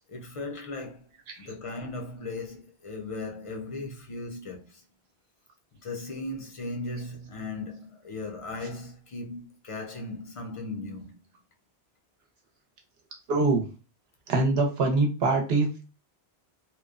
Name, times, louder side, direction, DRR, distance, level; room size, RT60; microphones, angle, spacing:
voice 1, 0.1-1.0 1.4-4.8 5.8-11.1, left 2 dB, 50° left, 0.4 m, -37 dB
voice 2, 13.3-13.6 14.3-15.8, right 3 dB, 75° right, 0.9 m, -24 dB
2.9 x 2.0 x 2.3 m
omnidirectional pair, 1.1 m